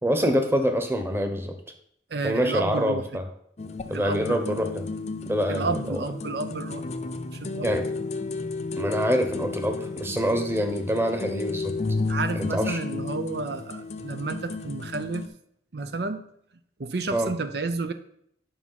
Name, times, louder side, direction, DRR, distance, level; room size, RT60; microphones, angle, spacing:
voice 1, 0.0-1.5 2.2-3.3 3.9-4.9 5.2-6.0 7.6-7.9 8.8-11.7 12.3-12.8 17.1-17.3, equal, 15° right, 6 dB, 1.1 m, -25 dB
voice 2, 2.1-3.0 3.9-4.6 5.5-6.8 7.3-7.7 12.1-15.2 15.7-16.2 16.8-17.9, right 3 dB, 65° right, 9 dB, 0.6 m, -31 dB
sound 1, 3.6-15.3, left 3 dB, 40° left, 0.7 m, -33 dB
9.8 x 6.0 x 5.8 m, 0.69 s
head